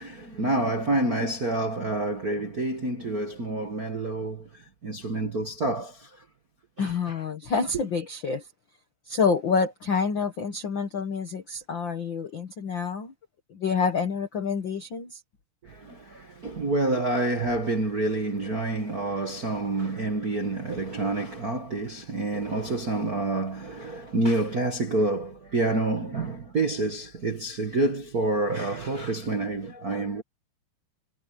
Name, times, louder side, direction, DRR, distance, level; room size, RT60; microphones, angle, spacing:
voice 1, 0.0-6.2 6.8-7.2 15.6-30.2, right 2 dB, 45° right, 1.2 m, -28 dB
voice 2, 6.8-8.5 9.1-13.1 13.5-15.2, left 5 dB, 65° left, 1.2 m, -27 dB
omnidirectional pair, 4.3 m